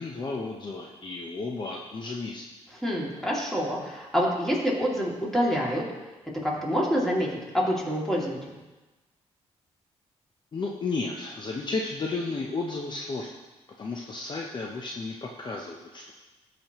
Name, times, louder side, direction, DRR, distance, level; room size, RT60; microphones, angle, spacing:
voice 1, 0.0-2.4 10.5-13.3 13.8-16.1, left 3 dB, 40° left, 0 dB, 0.8 m, -33 dB
voice 2, 2.7-5.8 6.4-7.3 7.5-8.4, equal, 5° left, -4 dB, 2.6 m, -26 dB
13.0 x 5.2 x 3.1 m, 1.1 s
cardioid pair, 75°, 12 cm